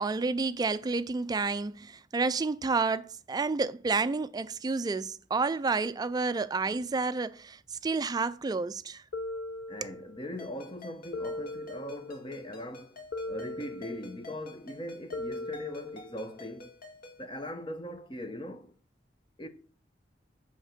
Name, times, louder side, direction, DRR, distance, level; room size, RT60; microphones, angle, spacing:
voice 1, 0.0-9.0 9.8-9.9, right 4 dB, 20° right, 0.3 m, -30 dB
sound 1, 9.1-10.3 11.1-12.3 13.1-14.3 15.1-16.3, left 2 dB, 75° left, 0.8 m, -39 dB
voice 2, 9.7-16.7 17.2-18.7 19.4-19.5, left 1 dB, 30° left, 0.9 m, -40 dB
Ringtone, 10.4-17.2, left 2 dB, 55° left, 1.9 m, -50 dB
9.3 x 3.6 x 6.5 m
head